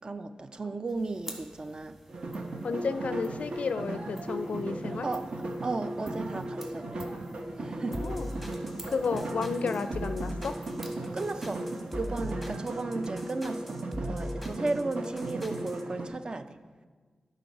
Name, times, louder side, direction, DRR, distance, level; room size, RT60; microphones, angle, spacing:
voice 1, 0.0-2.0 2.2-2.3 5.0-5.3 5.6-7.1 7.6-8.1 11.1-11.7 11.9-13.8 14.1-16.6, right 3 dB, 40° right, 10 dB, 0.4 m, -35 dB
sound 1, 0.9-12.6, right 1 dB, 20° right, 1.5 m, -50 dB
sound 2, 2.1-16.1, right 2 dB, 60° right, 0.8 m, -36 dB
voice 2, 2.6-5.1 8.0-8.3 8.9-10.5, left 5 dB, 80° left, 11 dB, 0.4 m, -32 dB
sound 3, 7.9-15.8, left 1 dB, 5° right, 0.9 m, -41 dB
11.5 x 3.9 x 5.3 m, 1.5 s
wide cardioid pair, 110°, 2 cm